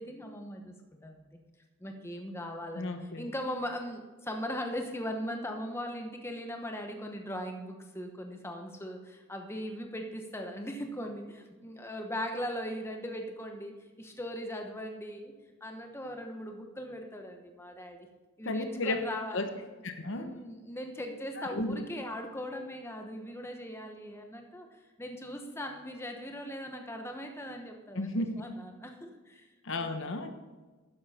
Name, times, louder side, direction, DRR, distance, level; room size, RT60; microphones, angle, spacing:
voice 1, 0.0-1.4 1.8-15.3 15.6-18.1 18.4-19.5 20.1-30.0, equal, 10° left, 4 dB, 1.0 m, -39 dB
voice 2, 2.8-3.2 18.4-19.0 19.3-19.5 19.8-20.3 21.4-21.8 27.9-28.3 29.6-30.3, left 2 dB, 60° left, 7 dB, 1.0 m, -33 dB
12.5 x 10.5 x 4.3 m, 1.3 s
head